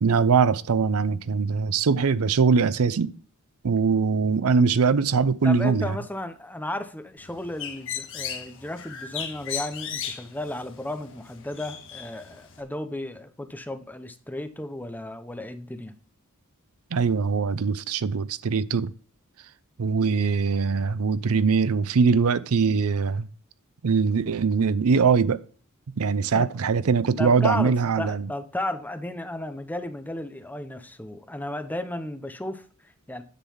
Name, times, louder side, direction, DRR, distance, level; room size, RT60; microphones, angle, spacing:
voice 1, 0.0-3.1 3.6-6.0 16.9-18.9 19.8-23.3 23.8-25.4 26.0-28.3, right 5 dB, 70° right, 0.5 m, -22 dB
voice 2, 5.4-15.9 26.3-26.4 27.2-33.2, left 1 dB, 10° left, 0.7 m, -34 dB
Bird, 7.2-12.6, left 8 dB, 60° left, 1.5 m, -37 dB
10.0 x 3.9 x 7.1 m
head